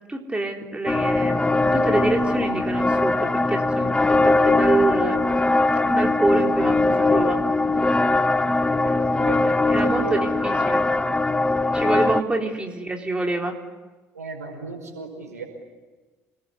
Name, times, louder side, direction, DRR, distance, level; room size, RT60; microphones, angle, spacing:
voice 1, 0.1-5.2 5.9-7.4 9.7-10.8 11.7-13.5, right 2 dB, 15° right, 2 dB, 4.0 m, -26 dB
sound 1, 0.9-12.2, left 2 dB, 10° left, 0.9 m, -21 dB
voice 2, 8.8-10.3 12.2-12.4 14.1-15.4, right 4 dB, 85° right, 4 dB, 5.1 m, -36 dB
28.5 x 20.5 x 9.9 m, 1.3 s
figure-of-eight pair, 55°, 8 cm